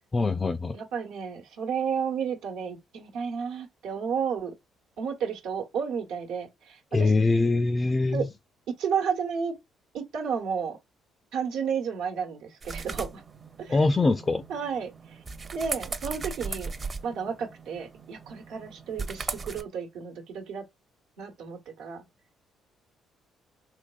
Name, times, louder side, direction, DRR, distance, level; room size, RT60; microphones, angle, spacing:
voice 1, 0.1-0.8 6.9-8.3 13.7-14.4, left 3 dB, 30° left, 0.3 m, -23 dB
voice 2, 0.7-4.5 5.0-7.1 8.1-8.3 8.7-9.5 9.9-10.8 11.3-13.2 13.6-14.1 14.5-15.2 15.5-16.7 17.0-20.7 21.2-22.0, right 6 dB, 80° right, 1.0 m, -32 dB
sound 1, 12.6-19.6, right 4 dB, 35° right, 0.7 m, -38 dB
3.2 x 3.1 x 2.4 m
supercardioid pair, 65°, 0 cm